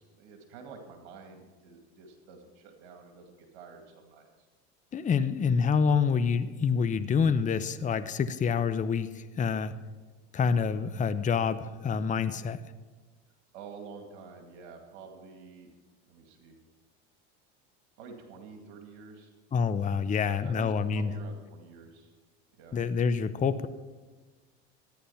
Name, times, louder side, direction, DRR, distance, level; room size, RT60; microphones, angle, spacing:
voice 1, 0.0-4.5 13.5-15.7 16.1-16.6 18.0-19.3 20.2-22.1 22.5-22.8, right 5 dB, 75° right, 4 dB, 2.3 m, -49 dB
voice 2, 4.9-9.7 10.3-12.6 19.5-21.1 22.7-23.7, left 6 dB, 25° left, 12 dB, 0.7 m, -27 dB
14.0 x 10.0 x 5.7 m, 1.3 s
supercardioid pair, 100°, 33 cm